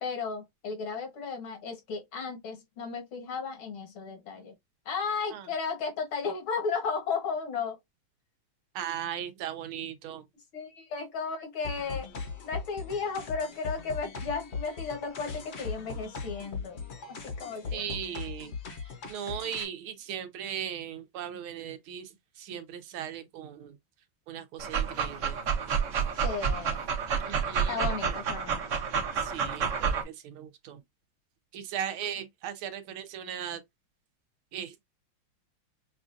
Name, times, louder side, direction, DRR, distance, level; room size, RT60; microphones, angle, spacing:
voice 1, 0.0-4.5 4.9-7.8 10.5-12.1 12.4-16.8 17.2-17.8 26.2-26.9 27.7-28.6, left 5 dB, 75° left, 2.1 m, -34 dB
voice 2, 8.7-10.2 17.7-18.6 19.1-23.8 24.3-25.4 27.2-27.9 29.1-30.8 31.5-33.6 34.5-34.8, right 9 dB, 85° right, 1.6 m, -38 dB
sound 1, 11.6-19.6, left 4 dB, 50° left, 0.8 m, -39 dB
Dog, 24.6-30.0, right 6 dB, 60° right, 0.8 m, -29 dB
5.8 x 2.4 x 2.5 m
omnidirectional pair, 2.3 m